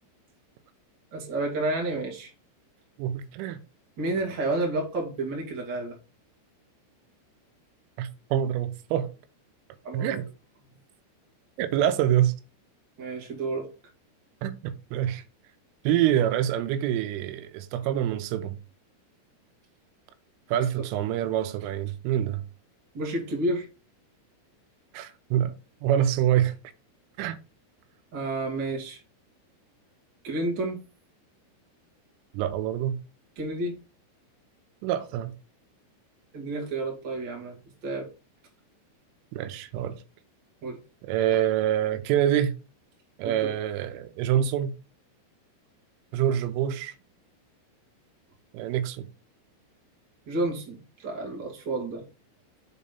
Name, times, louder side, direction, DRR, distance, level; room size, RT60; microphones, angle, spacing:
voice 1, 1.1-2.3 4.0-6.0 9.8-10.2 13.0-13.7 22.9-23.7 28.1-29.0 30.2-30.8 33.3-33.8 36.3-37.6 37.8-38.1 40.6-40.8 43.2-43.5 50.2-52.0, right 2 dB, 45° right, 1.4 m, -30 dB
voice 2, 3.0-3.6 8.0-9.1 9.9-10.3 11.6-12.3 14.4-15.2 15.8-18.6 20.5-22.4 24.9-25.5 25.8-26.5 27.2-27.4 32.3-33.0 34.8-35.3 39.3-40.0 41.1-42.6 43.2-44.7 46.1-46.9 48.5-49.1, right 11 dB, 85° right, 3.2 m, -26 dB
7.2 x 4.1 x 5.2 m
omnidirectional pair, 5.7 m